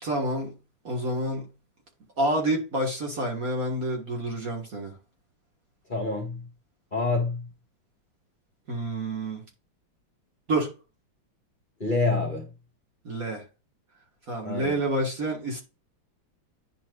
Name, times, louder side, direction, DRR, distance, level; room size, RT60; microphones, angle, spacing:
voice 1, 0.0-0.5 0.8-1.5 2.2-5.0 8.7-9.4 10.5-10.7 13.0-13.5 14.3-15.6, right 1 dB, 40° right, 2.0 m, -28 dB
voice 2, 5.9-6.4 6.9-7.4 11.8-12.5 14.4-14.7, left 3 dB, 25° left, 1.7 m, -27 dB
10.5 x 4.4 x 2.5 m
omnidirectional pair, 2.3 m